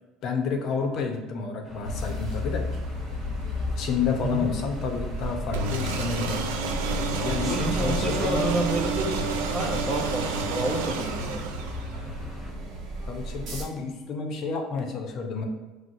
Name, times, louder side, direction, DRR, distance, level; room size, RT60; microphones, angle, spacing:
voice 1, 0.2-2.7 3.8-6.4 7.2-8.5 13.1-15.4, left 5 dB, 50° left, 4 dB, 0.6 m, -30 dB
sound 1, 1.6-12.5, left 1 dB, 10° left, 0.9 m, -43 dB
sound 2, 1.8-13.6, equal, 60° right, 0.9 m, -34 dB
sound 3, 5.5-12.1, right 3 dB, 85° right, 0.4 m, -30 dB
voice 2, 7.4-11.5, right 2 dB, 20° right, 1 dB, 0.6 m, -30 dB
5.9 x 2.1 x 2.5 m, 1.3 s
supercardioid pair, 115°, 0 cm